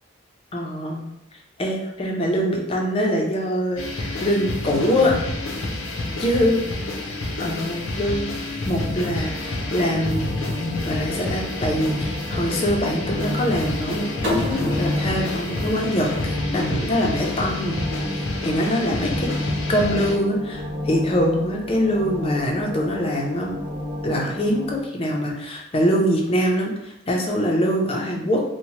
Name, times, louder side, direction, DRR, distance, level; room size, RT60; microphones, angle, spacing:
voice 1, 0.5-1.1 1.6-5.2 6.2-6.6 7.4-8.3 8.7-10.3 10.8-17.8 18.1-19.3 19.7-23.6 24.0-28.4, equal, 30° left, 0 dB, 0.4 m, -23 dB
sound 1, 3.8-20.1, left 2 dB, 80° left, 0.5 m, -29 dB
sound 2, 9.3-24.8, left 1 dB, 30° right, 0.7 m, -32 dB
sound 3, 14.2-17.0, left 1 dB, 70° right, 0.7 m, -32 dB
2.7 x 2.0 x 3.0 m, 0.85 s
head